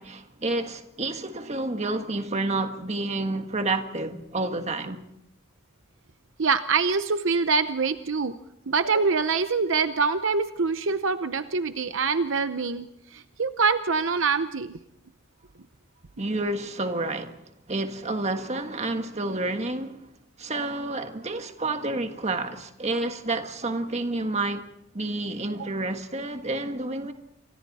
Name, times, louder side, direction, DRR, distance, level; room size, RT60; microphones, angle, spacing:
voice 1, 0.0-5.0 16.2-17.4 17.7-20.0 20.4-24.7 24.9-27.1, right 2 dB, 30° right, 1.6 m, -29 dB
voice 2, 6.4-8.3 8.7-12.9 13.1-14.8 25.6-25.7, right 4 dB, 65° right, 0.8 m, -25 dB
28.0 x 25.0 x 4.2 m
head